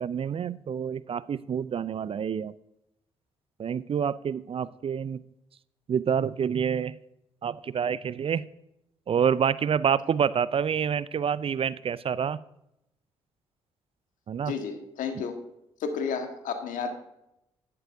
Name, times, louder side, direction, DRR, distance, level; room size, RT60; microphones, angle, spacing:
voice 1, 0.0-2.5 3.6-5.2 5.9-7.0 7.4-8.4 9.1-12.4 14.3-14.5, right 7 dB, 40° right, 19 dB, 0.4 m, -27 dB
voice 2, 14.4-15.3 15.8-16.9, left 6 dB, 70° left, 6 dB, 1.4 m, -32 dB
11.0 x 11.0 x 2.7 m, 0.84 s
hypercardioid pair, 45°, 14 cm